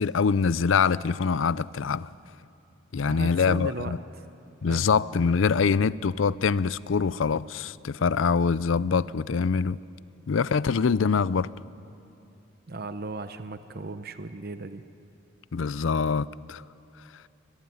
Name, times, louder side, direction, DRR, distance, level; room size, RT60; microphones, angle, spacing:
voice 1, 0.0-2.1 2.9-4.0 4.6-9.8 10.3-11.5 15.5-16.6, left 5 dB, 75° left, 0.5 m, -24 dB
voice 2, 3.0-4.2 4.6-4.9 12.7-14.8, right 3 dB, 50° right, 0.8 m, -36 dB
23.0 x 22.0 x 9.3 m
head